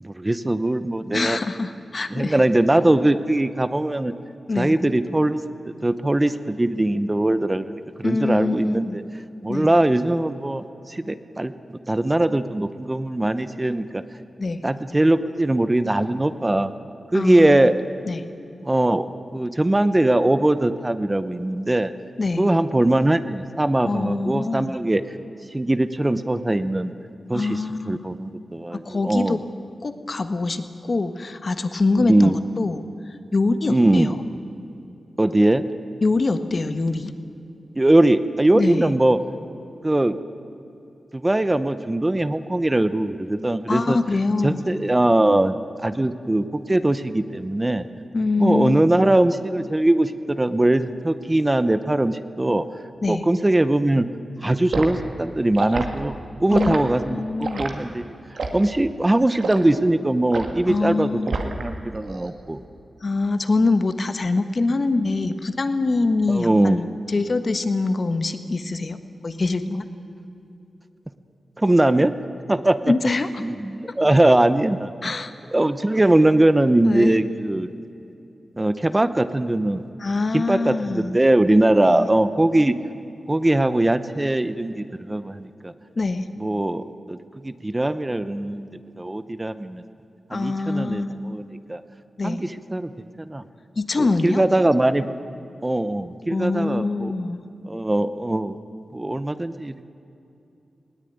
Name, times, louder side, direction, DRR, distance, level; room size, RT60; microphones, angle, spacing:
voice 1, 0.0-1.4 2.1-4.1 4.6-5.4 5.8-9.0 9.4-11.5 11.9-14.0 14.6-16.7 17.1-17.7 18.6-19.1 19.3-21.9 22.4-25.2 25.5-26.9 27.3-29.4 32.0-32.4 33.7-34.1 35.2-35.6 37.7-39.2 39.8-40.2 41.1-44.0 44.4-45.6 45.8-47.8 48.4-52.6 53.1-54.1 54.4-58.1 58.5-61.1 61.5-62.6 66.3-66.8 71.6-72.1 72.5-72.9 73.4-74.9 75.5-77.7 78.6-79.8 80.3-82.8 83.3-85.7 86.4-87.2 87.4-88.7 89.0-89.8 90.3-91.8 92.2-92.9 93.2-93.4 94.0-95.1 95.6-97.1 97.6-98.6 98.9-99.8, right 1 dB, 20° right, 12 dB, 0.8 m, -21 dB
voice 2, 1.1-2.4 4.5-4.7 8.0-9.0 9.5-9.7 14.4-14.6 17.1-17.7 18.1-18.2 22.2-22.5 23.8-24.8 27.3-28.0 28.7-29.4 29.8-32.8 33.3-34.2 36.0-37.1 38.6-38.9 43.7-44.6 48.1-48.8 53.0-53.3 56.5-57.6 60.7-61.4 63.0-69.0 69.2-69.9 72.9-73.4 75.0-75.3 76.8-77.2 80.0-81.2 81.8-82.1 86.0-86.2 90.3-91.1 92.2-92.4 93.8-94.4 96.3-97.4, left 3 dB, 45° left, 10 dB, 1.4 m, -24 dB
Liquid, 54.7-54.9 55.5-55.9 56.5-56.8 57.4-57.7 58.4-58.6 59.4-59.6 60.3-60.6 61.3-61.7 62.0-62.3, right 4 dB, 75° right, 2.1 m, -27 dB
20.0 x 18.0 x 9.4 m, 2.8 s
wide cardioid pair, 95°, 0 cm